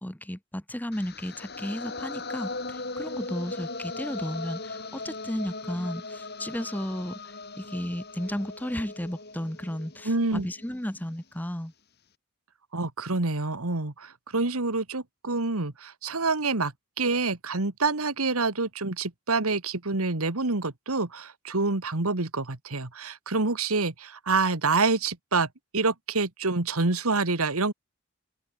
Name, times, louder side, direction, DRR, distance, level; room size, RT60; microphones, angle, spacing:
voice 1, 0.0-7.2 7.6-11.7, equal, 10° left, 1.0 m, -34 dB
sound 1, 0.9-11.0, left 3 dB, 45° left, 4.1 m, -39 dB
voice 2, 10.1-10.5 12.7-27.7, right 3 dB, 90° right, 2.0 m, -27 dB
open air
head